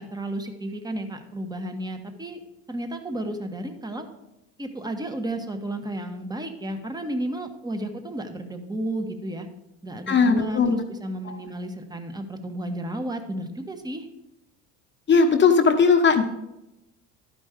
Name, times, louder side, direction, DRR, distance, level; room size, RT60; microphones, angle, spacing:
voice 1, 0.0-2.4 2.7-4.0 4.6-9.5 9.8-14.1, right 1 dB, 10° right, 7 dB, 1.3 m, -32 dB
voice 2, 10.1-10.8 11.2-11.3 15.1-16.2, left 5 dB, 30° left, 4 dB, 1.1 m, -18 dB
12.0 x 5.3 x 5.0 m, 0.93 s
supercardioid pair, 90°, 34 cm